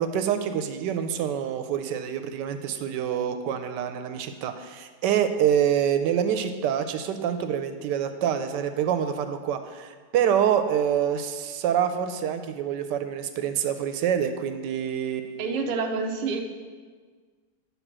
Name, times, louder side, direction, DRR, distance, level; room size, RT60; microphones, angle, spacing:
voice 1, 0.0-15.5, right 9 dB, 80° right, 9 dB, 1.2 m, -26 dB
voice 2, 15.4-16.4, right 4 dB, 60° right, 2 dB, 0.4 m, -27 dB
9.2 x 3.7 x 6.0 m, 1.5 s
omnidirectional pair, 1.9 m